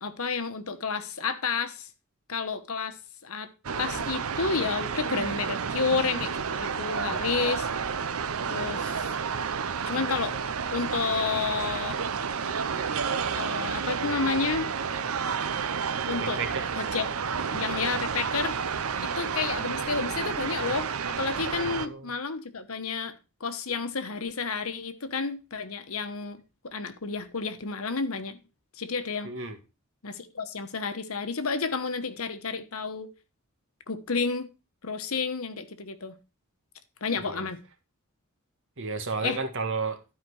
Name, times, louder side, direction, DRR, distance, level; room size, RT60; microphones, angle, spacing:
voice 1, 0.0-1.9 2.3-3.0 3.2-3.5 3.8-7.7 8.4-9.1 9.9-10.3 10.7-12.0 13.3-14.7 16.0-16.4 16.8-17.1 17.5-23.1 23.4-28.4 28.8-29.3 30.0-33.1 33.9-34.5 34.8-36.1 37.0-37.6 39.2-39.4, left 4 dB, 75° left, 1.2 m, -31 dB
sound 1, 3.6-21.9, right 6 dB, 75° right, 0.7 m, -31 dB
voice 2, 16.2-16.7 21.7-22.1 29.2-29.6 37.2-37.4 38.8-40.0, right 4 dB, 60° right, 1.6 m, -32 dB
12.0 x 5.1 x 4.7 m
head